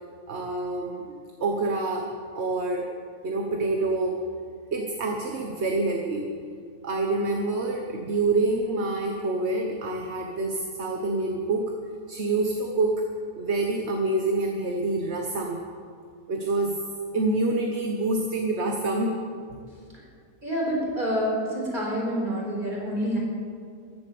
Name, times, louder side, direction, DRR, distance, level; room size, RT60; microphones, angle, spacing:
voice 1, 0.3-1.0 1.4-2.1 2.3-2.9 3.2-4.1 4.7-6.3 6.8-11.7 12.1-13.0 13.4-15.6 16.3-16.7 17.1-19.2, right 2 dB, 50° right, 2 dB, 1.4 m, -26 dB
voice 2, 20.4-23.2, equal, 30° right, -3 dB, 4.6 m, -27 dB
15.0 x 11.5 x 6.9 m, 2.3 s
omnidirectional pair, 1.6 m